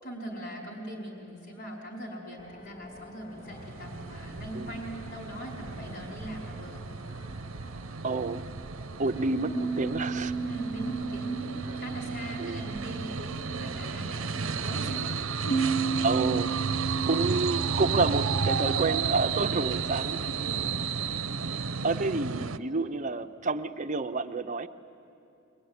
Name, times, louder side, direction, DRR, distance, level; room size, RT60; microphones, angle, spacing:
voice 1, 0.0-6.9 10.4-15.2 15.4-15.7 20.2-20.7 21.1-21.3, right 1 dB, 55° left, -2 dB, 4.7 m, -41 dB
sound 1, 2.4-20.7, left 1 dB, 40° left, 2.3 m, -52 dB
sound 2, 3.4-22.6, right 5 dB, 80° right, 0.7 m, -33 dB
voice 2, 8.0-8.5 9.0-10.3 12.4-12.6 16.0-16.5 17.0-20.3 21.8-24.7, right 3 dB, 40° right, 7 dB, 0.7 m, -29 dB
sound 3, 9.5-14.1 15.5-20.8, right 5 dB, 25° left, 0.8 m, -35 dB
23.0 x 22.5 x 9.6 m, 2.7 s
head